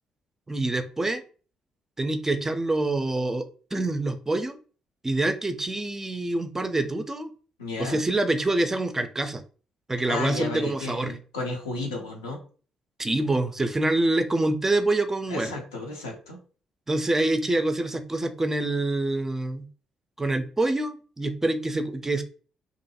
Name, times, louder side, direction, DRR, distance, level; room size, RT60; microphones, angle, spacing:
voice 1, 0.5-1.2 2.0-4.6 5.0-7.3 7.8-9.4 9.9-11.1 13.0-15.5 16.9-19.7 20.2-22.2, right 2 dB, 20° right, 8 dB, 0.4 m, -26 dB
voice 2, 7.6-8.0 10.1-12.4 15.3-16.4, left 2 dB, 85° left, 0 dB, 0.5 m, -33 dB
2.5 x 2.2 x 2.7 m, 0.39 s
figure-of-eight pair, 45°, 2 cm